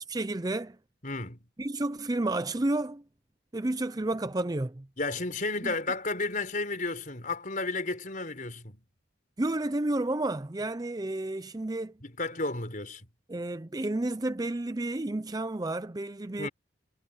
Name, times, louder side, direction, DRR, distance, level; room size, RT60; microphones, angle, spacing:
voice 1, 0.1-0.8 1.6-3.0 3.5-4.9 5.6-5.7 9.4-11.9 13.3-16.5, right 2 dB, 20° right, 0.5 m, -31 dB
voice 2, 1.0-1.5 5.0-8.8 12.0-13.1 16.4-16.5, left 3 dB, 40° left, 5.0 m, -32 dB
head